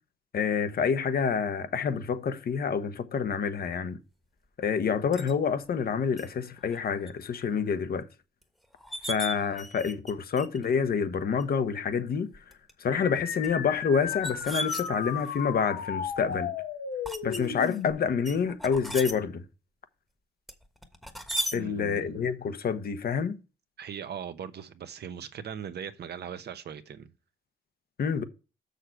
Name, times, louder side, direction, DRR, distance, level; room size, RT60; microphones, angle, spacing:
voice 1, 0.3-4.0 4.6-8.1 9.1-12.3 12.8-16.5 17.2-19.4 21.5-23.4 28.0-28.2, left 6 dB, 50° left, 1.0 m, -28 dB
sound 1, 5.1-5.3 6.2-6.3 6.7-7.1 7.5-7.6 8.4-8.5 8.8-10.1 10.4-10.7 11.4-11.5 12.3-12.7 13.4-15.4 16.0-16.4 17.0-17.8 18.2-19.1 20.5-21.6, equal, ahead, 1.3 m, -36 dB
sound 2, 12.9-17.9, left 8 dB, 85° left, 1.4 m, -34 dB
voice 2, 21.5-22.2 23.8-27.1, right 8 dB, 55° right, 0.9 m, -39 dB
6.6 x 6.4 x 4.6 m
cardioid pair, 90°, 20 cm